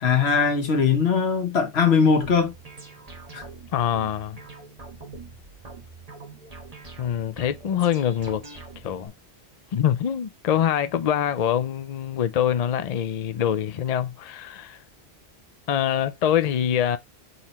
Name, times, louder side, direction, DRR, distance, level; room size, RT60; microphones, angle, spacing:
voice 1, 0.0-2.5 3.3-3.4, left 5 dB, 80° left, 1.3 m, -20 dB
sound 1, 2.2-9.1, right 3 dB, 35° right, 1.3 m, -44 dB
voice 2, 3.7-4.4 7.0-8.4 8.8-9.1 9.7-14.8 15.7-17.0, left 9 dB, 50° left, 0.5 m, -24 dB
3.9 x 3.1 x 4.1 m
omnidirectional pair, 1.1 m